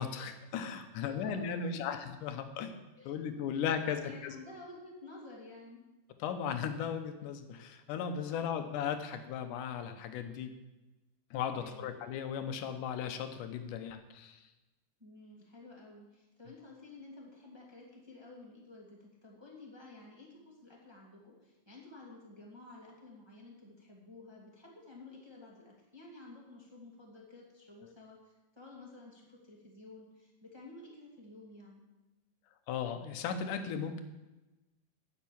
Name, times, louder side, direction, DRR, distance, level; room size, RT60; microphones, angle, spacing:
voice 1, 0.0-2.7 3.1-4.4 6.2-10.5 11.3-14.4 32.7-34.0, left 7 dB, 70° left, 8 dB, 2.2 m, -36 dB
voice 2, 1.0-1.8 3.0-3.2 3.5-5.8 8.3-8.6 11.6-12.0 15.0-31.8, left 2 dB, 10° right, -3 dB, 1.3 m, -52 dB
10.5 x 7.4 x 8.5 m, 1.1 s
omnidirectional pair, 4.4 m